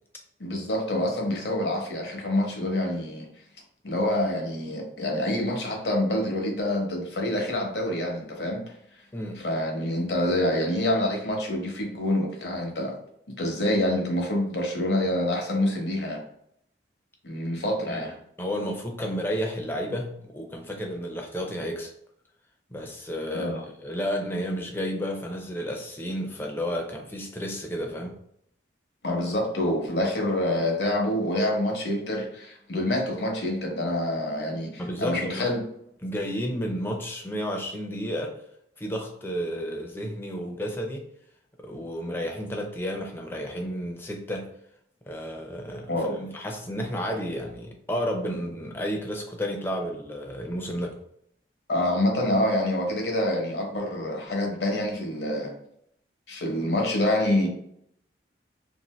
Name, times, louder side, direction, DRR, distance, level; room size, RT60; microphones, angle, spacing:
voice 1, 0.4-3.3 3.8-8.7 9.4-13.0 13.3-16.2 17.2-18.2 23.3-23.6 29.0-35.6 45.9-46.2 51.7-55.5 56.3-57.5, left 1 dB, 65° left, 1 dB, 0.8 m, -26 dB
voice 2, 9.1-9.4 17.9-18.1 18.4-21.9 22.7-28.2 34.8-35.5 36.0-38.4 38.8-41.1 41.6-44.5 45.1-51.0, equal, 10° left, 2 dB, 0.4 m, -32 dB
2.7 x 2.5 x 3.1 m, 0.72 s
head